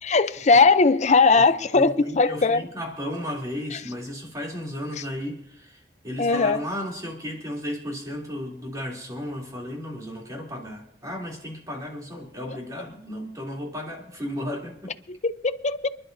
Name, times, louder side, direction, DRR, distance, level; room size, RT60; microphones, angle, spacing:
voice 1, 0.0-2.6 6.2-6.6 15.1-15.9, left 4 dB, 40° left, 0.6 m, -19 dB
voice 2, 1.7-14.9, equal, 20° right, 3.2 m, -34 dB
28.0 x 11.0 x 2.7 m
head